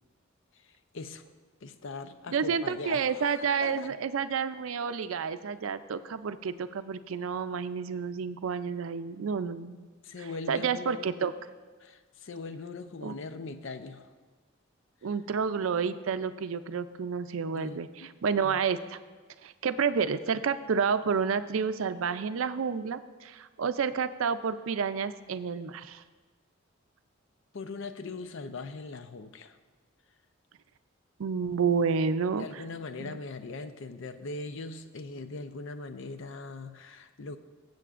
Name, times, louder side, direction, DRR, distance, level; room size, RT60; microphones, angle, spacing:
voice 1, 0.6-1.3 1.6-3.9 10.0-11.1 11.8-14.1 17.5-18.1 27.5-29.6 32.4-37.4, left 3 dB, 65° left, 10 dB, 0.6 m, -40 dB
voice 2, 2.3-9.8 10.5-11.3 13.0-13.1 15.0-17.9 18.2-19.0 19.4-26.0 31.2-32.6 33.0-33.2, right 6 dB, 75° right, 12 dB, 0.5 m, -30 dB
22.0 x 7.7 x 2.5 m, 1.4 s
head